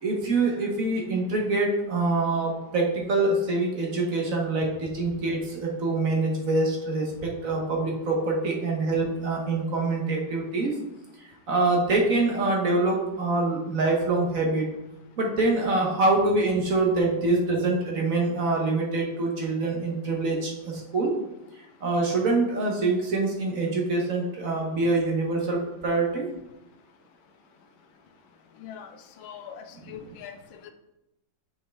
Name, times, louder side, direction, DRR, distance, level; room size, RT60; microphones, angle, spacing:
voice 1, 0.0-10.7 11.5-14.7 15.2-21.1 21.8-26.3, right 2 dB, 50° right, 0 dB, 1.2 m, -25 dB
voice 2, 28.6-28.9 29.2-30.4 30.6-30.7, left 8 dB, 90° left, 7 dB, 1.5 m, -42 dB
6.7 x 5.4 x 3.4 m, 0.92 s
omnidirectional pair, 2.1 m